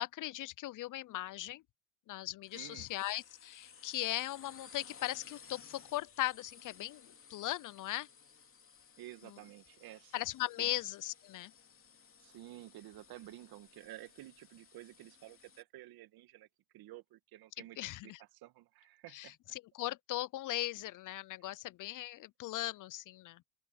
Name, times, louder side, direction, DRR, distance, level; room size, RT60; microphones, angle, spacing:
voice 1, 0.0-1.6 2.1-8.1 9.3-9.4 10.1-11.5 17.8-18.2 19.1-23.4, left 16 dB, 45° left, 0.7 m, -39 dB
sound 1, 2.4-15.6, left 6 dB, 30° left, 3.2 m, -58 dB
voice 2, 2.5-2.9 9.0-10.1 10.6-10.7 12.2-16.5 16.7-19.4, right 15 dB, 55° right, 2.2 m, -52 dB
open air
hypercardioid pair, 80°, 43 cm